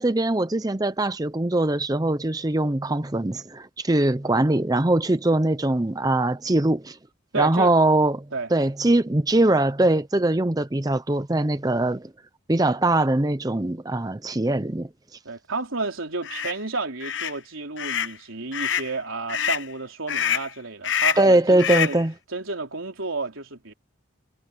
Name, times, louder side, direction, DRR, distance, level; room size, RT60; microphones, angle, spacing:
voice 1, 0.0-7.0 7.3-8.2 8.5-12.1 12.5-14.9 21.2-22.1, right 2 dB, 20° right, 0.6 m, -22 dB
voice 2, 7.3-7.7 8.3-8.5 15.3-22.0 22.3-23.7, right 3 dB, 85° right, 3.8 m, -31 dB
sound 1, 16.2-16.5 17.0-17.4 17.8-18.1 18.5-18.9 19.3-19.7 20.1-20.5 20.8-21.3 21.6-22.0, left 9 dB, 65° left, 0.8 m, -26 dB
head